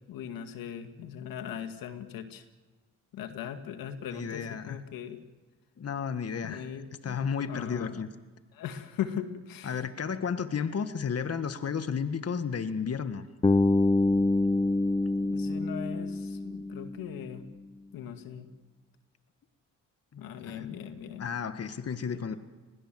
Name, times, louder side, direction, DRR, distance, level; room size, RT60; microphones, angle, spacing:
voice 1, 0.1-2.4 3.1-5.2 6.4-7.2 7.5-8.1 8.6-9.8 15.1-17.4 17.9-18.5 20.2-21.3, left 9 dB, 85° left, 8 dB, 2.1 m, -39 dB
voice 2, 4.1-4.8 5.8-6.7 7.0-8.1 9.6-13.3 20.1-20.8 21.2-22.4, left 6 dB, 45° left, 10 dB, 1.6 m, -33 dB
Bass guitar, 13.4-17.4, left 2 dB, 15° left, 0.7 m, -26 dB
29.5 x 21.0 x 7.7 m, 1.3 s
cardioid pair, 70°, 34 cm